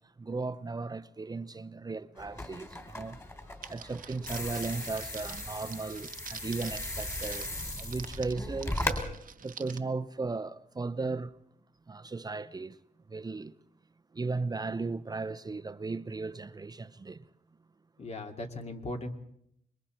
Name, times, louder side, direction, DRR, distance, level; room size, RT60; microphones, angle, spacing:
voice 1, 0.2-3.2 3.7-8.9 9.4-11.3 11.9-12.8 13.1-13.5 14.1-17.3, right 3 dB, 25° right, 0.7 m, -36 dB
sound 1, 2.2-9.0, left 1 dB, 20° left, 3.3 m, -37 dB
Crackle, 3.6-9.8, right 8 dB, 65° right, 1.0 m, -47 dB
voice 2, 18.0-19.1, left 2 dB, 45° left, 2.4 m, -38 dB
26.5 x 23.0 x 4.4 m
cardioid pair, 100°, 15 cm